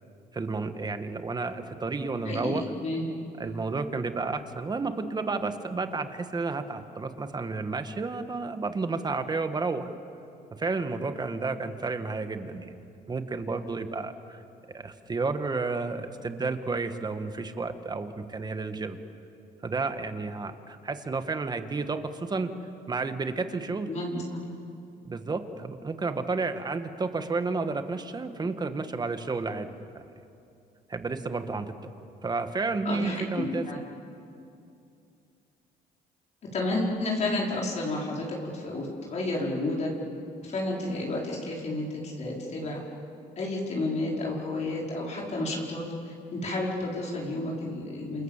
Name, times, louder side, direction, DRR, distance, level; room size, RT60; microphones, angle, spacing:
voice 1, 0.3-2.6 3.4-9.9 10.6-12.7 13.1-14.4 14.7-19.0 19.6-22.5 22.9-23.9 25.0-29.7 30.9-31.9 32.2-33.7, right 3 dB, 25° right, 8 dB, 1.8 m, -31 dB
voice 2, 2.2-3.1 23.9-24.5 32.8-33.8 36.5-39.9 40.4-42.8 43.4-48.2, left 2 dB, 40° left, -3 dB, 5.0 m, -31 dB
28.5 x 28.0 x 7.5 m, 2.6 s
cardioid pair, 110°, 17 cm